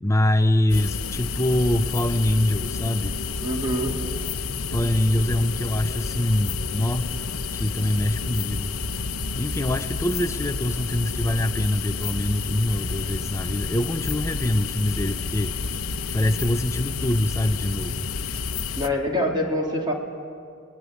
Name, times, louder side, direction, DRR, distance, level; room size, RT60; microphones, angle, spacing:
voice 1, 0.0-3.2 4.7-7.1 7.5-8.7 9.4-15.5 16.1-18.1, left 1 dB, 15° left, 9 dB, 0.7 m, -24 dB
sound 1, 0.7-18.9, left 4 dB, 75° left, 1.0 m, -30 dB
voice 2, 3.4-4.0 18.8-19.9, left 1 dB, 20° right, 0 dB, 2.6 m, -25 dB
28.5 x 20.5 x 9.8 m, 2.4 s
head